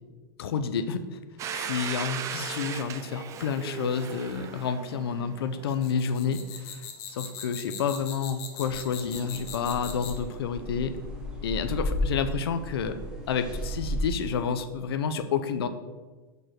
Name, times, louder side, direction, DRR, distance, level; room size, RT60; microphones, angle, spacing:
voice 1, 0.4-1.2 1.5-10.9 11.4-13.0 13.3-15.7, left 6 dB, 85° left, 10 dB, 0.7 m, -29 dB
Domestic sounds home sounds, 1.4-6.0, right 8 dB, 25° right, 0.5 m, -37 dB
sound 1, 5.7-10.3, left 8 dB, 45° left, 1.3 m, -40 dB
sound 2, 8.6-14.0, equal, 5° right, 1.3 m, -34 dB
6.2 x 5.3 x 5.9 m, 1.3 s
supercardioid pair, 140°, 13 cm